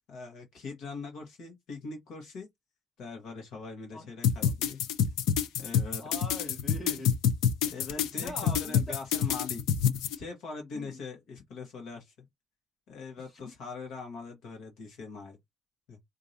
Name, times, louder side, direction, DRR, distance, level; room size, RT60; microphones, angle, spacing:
voice 1, 0.1-2.5 3.0-4.8 5.6-6.1 7.6-9.6 10.1-12.3 12.9-15.4 15.9-16.0, left 4 dB, 50° left, 1.2 m, -42 dB
sound 1, 4.2-10.2, left 8 dB, 75° left, 0.7 m, -26 dB
voice 2, 6.0-7.2 8.1-8.9 10.7-11.0 13.2-13.5, left 2 dB, 20° left, 2.0 m, -42 dB
4.6 x 2.6 x 2.7 m
cardioid pair, 180°, 0 cm